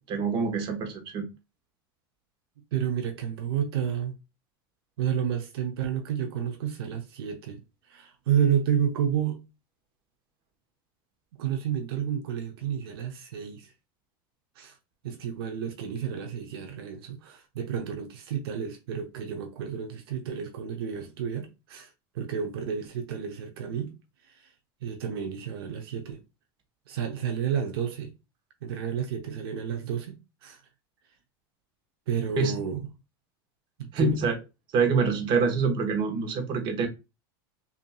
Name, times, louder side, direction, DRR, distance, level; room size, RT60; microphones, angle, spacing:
voice 1, 0.1-1.2 32.4-32.5 33.9-34.3 34.7-36.9, right 4 dB, 40° right, 1.2 m, -25 dB
voice 2, 2.7-4.2 5.0-7.6 7.9-9.4 11.4-13.7 14.6-14.8 15.0-21.9 22.1-23.9 24.3-24.5 24.8-26.2 26.9-28.1 28.6-30.2 30.4-30.6 32.1-32.9 33.8-34.2, right 8 dB, 85° right, 0.8 m, -30 dB
5.7 x 2.9 x 2.3 m
supercardioid pair, 135°, 12 cm